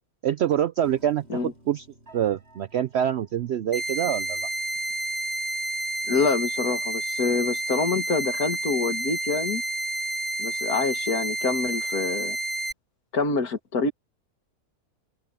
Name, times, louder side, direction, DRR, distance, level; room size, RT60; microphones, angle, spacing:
voice 1, 0.2-1.9 2.1-4.5, right 10 dB, 70° right, 0.6 m, -25 dB
Piano, 0.8-7.0, right 1 dB, 45° right, 8.2 m, -57 dB
sound 1, 3.7-12.7, right 2 dB, 35° left, 1.5 m, -30 dB
voice 2, 6.1-9.6 10.4-12.4 13.1-13.9, left 4 dB, 75° left, 2.4 m, -26 dB
open air
omnidirectional pair, 1.6 m